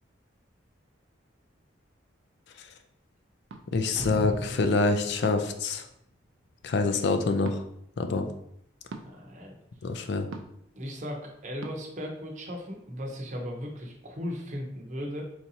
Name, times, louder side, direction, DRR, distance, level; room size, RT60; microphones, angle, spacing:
sound 1, 3.5-3.7 5.2-5.6 7.4-7.6 8.9-9.1 10.3-10.6 11.6-11.7, right 3 dB, 80° right, 0.4 m, -41 dB
voice 1, 3.7-5.8 6.6-7.6 8.0-8.3 9.8-10.3, left 3 dB, 60° left, 6 dB, 0.4 m, -26 dB
sound 2, 4.0-6.5, equal, 30° left, 1.0 m, -38 dB
voice 2, 9.1-9.5 10.8-15.2, equal, 40° right, 0 dB, 0.7 m, -37 dB
4.5 x 2.6 x 2.8 m, 0.75 s
head